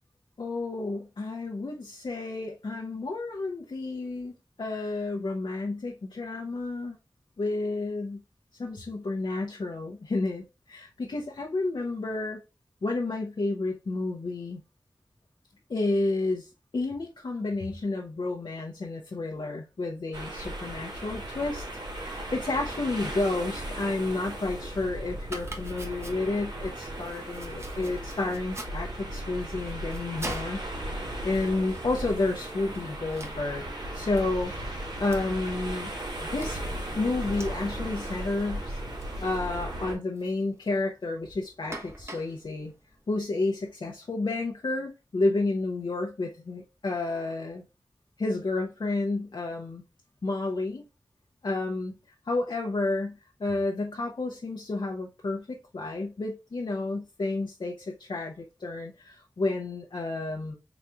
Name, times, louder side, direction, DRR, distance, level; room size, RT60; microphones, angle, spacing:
voice 1, 0.4-7.0 7.4-8.2 8.6-12.4 12.8-14.6 15.7-21.7 21.9-30.6 31.2-33.6 33.9-35.9 36.2-36.6 36.9-42.7 43.1-47.6 48.2-49.8 50.2-50.8 51.4-60.5, left 2 dB, 85° left, 0.8 m, -31 dB
sound 1, 20.1-40.0, right 1 dB, 80° right, 1.9 m, -36 dB
Domestic sounds home sounds, 25.2-43.7, right 1 dB, 35° right, 1.1 m, -47 dB
4.0 x 3.1 x 3.5 m
wide cardioid pair, 70°, 8 cm